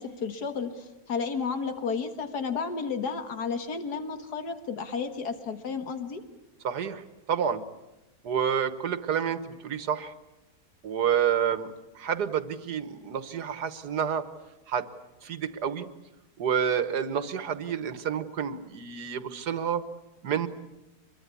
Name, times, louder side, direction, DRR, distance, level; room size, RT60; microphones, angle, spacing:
voice 1, 0.0-6.2, left 5 dB, 85° left, 8 dB, 2.1 m, -32 dB
voice 2, 6.6-7.6 8.2-10.1 10.8-14.2 14.7-14.9 15.2-15.9 16.4-19.8 20.2-20.5, right 8 dB, 90° right, 12 dB, 1.9 m, -29 dB
25.0 x 23.0 x 8.4 m, 1.0 s
omnidirectional pair, 1.7 m